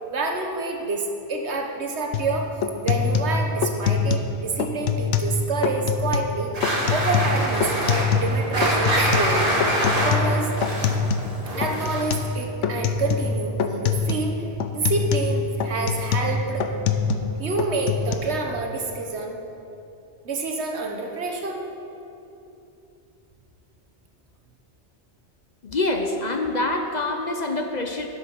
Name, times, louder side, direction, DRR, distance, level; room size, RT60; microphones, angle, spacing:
voice 1, 0.1-2.5 2.8-10.5 11.6-14.4 14.7-16.7 17.4-19.4 20.2-21.6, right 3 dB, 70° right, 2 dB, 1.4 m, -28 dB
sound 1, 2.1-2.3 2.6-4.3 4.6-5.4 5.6-6.3 6.6-8.4 8.6-11.3 11.6-12.3 12.6-13.3 13.6-14.3 14.6-17.3 17.6-18.1, left 6 dB, 85° left, 1.0 m, -24 dB
sound 2, 6.5-12.2, right 1 dB, 35° right, 2.2 m, -25 dB
voice 2, 25.6-28.1, left 2 dB, 45° left, 4 dB, 0.7 m, -25 dB
11.5 x 7.7 x 5.8 m, 2.8 s
omnidirectional pair, 1.2 m